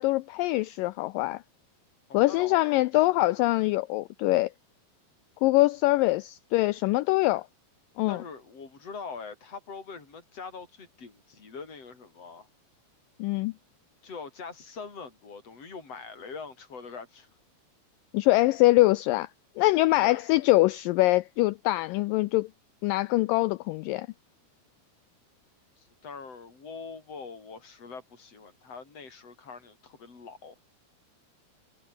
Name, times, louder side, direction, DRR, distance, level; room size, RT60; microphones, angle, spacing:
voice 1, 0.0-1.4 2.1-4.5 5.4-7.5 8.0-8.2 13.2-13.5 18.1-19.3 19.6-22.5 22.8-24.1, left 19 dB, 85° left, 2.0 m, -23 dB
voice 2, 2.1-3.3 8.1-12.5 14.0-17.3 20.0-20.2 25.8-30.6, left 5 dB, 40° left, 6.9 m, -43 dB
omnidirectional pair, 4.5 m